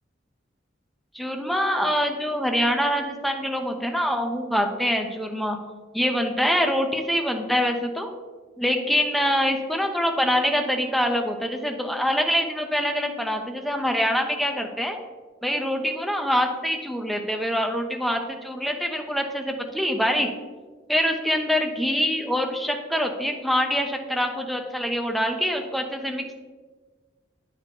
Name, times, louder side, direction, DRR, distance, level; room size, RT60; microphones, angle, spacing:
voice 1, 1.1-5.6 5.9-8.1 8.6-15.0 15.4-20.3 20.9-26.3, equal, ahead, 3 dB, 0.6 m, -25 dB
9.0 x 3.8 x 4.5 m, 1.4 s
head